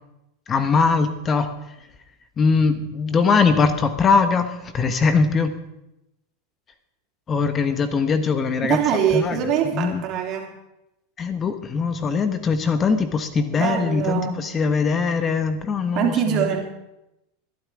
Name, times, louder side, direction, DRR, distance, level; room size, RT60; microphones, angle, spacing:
voice 1, 0.5-1.5 2.4-5.5 7.3-8.8 9.1-9.4 9.7-10.0 11.2-16.5, left 5 dB, 30° left, 10 dB, 1.3 m, -21 dB
voice 2, 8.6-10.5 13.5-14.4 15.9-16.7, right 9 dB, 45° right, 1 dB, 3.3 m, -23 dB
21.5 x 12.0 x 3.7 m, 0.88 s
hypercardioid pair, 90°, 0 cm